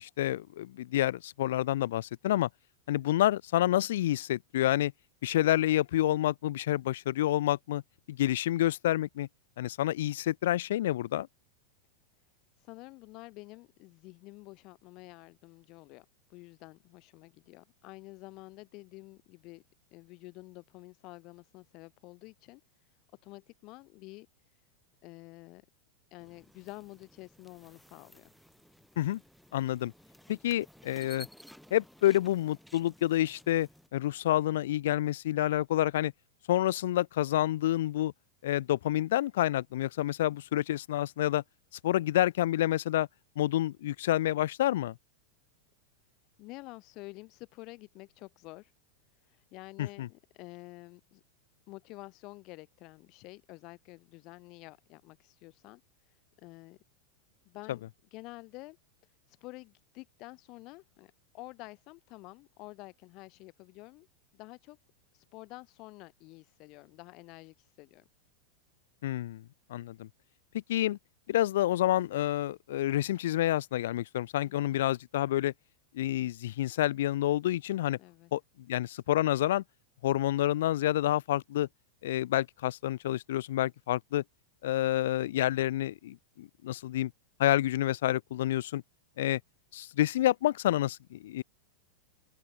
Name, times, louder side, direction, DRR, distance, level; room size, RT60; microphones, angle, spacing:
voice 1, 0.0-2.5 2.9-4.9 5.2-7.8 8.1-9.3 9.6-11.3 29.0-29.2 29.5-29.9 30.3-31.3 31.7-36.1 36.5-38.1 38.4-41.4 41.8-43.1 43.4-44.9 49.8-50.1 69.0-69.4 69.7-70.1 70.5-71.0 71.3-75.5 75.9-78.0 78.3-78.4 78.7-79.6 80.0-81.7 82.0-84.2 84.6-87.1 87.4-88.8 89.2-89.4 89.7-91.4, left 14 dB, 55° left, 0.9 m, -28 dB
voice 2, 12.6-19.6 19.9-23.0 23.2-24.6 25.0-25.7 26.1-28.3 46.4-48.7 49.2-51.2 51.7-56.8 57.4-58.8 59.0-64.1 64.3-64.8 65.1-68.1 74.4-74.8 78.0-78.3, left 23 dB, 40° left, 5.9 m, -49 dB
sound 1, 26.2-33.9, equal, ahead, 2.3 m, -56 dB
open air
figure-of-eight pair, 90°, 0 cm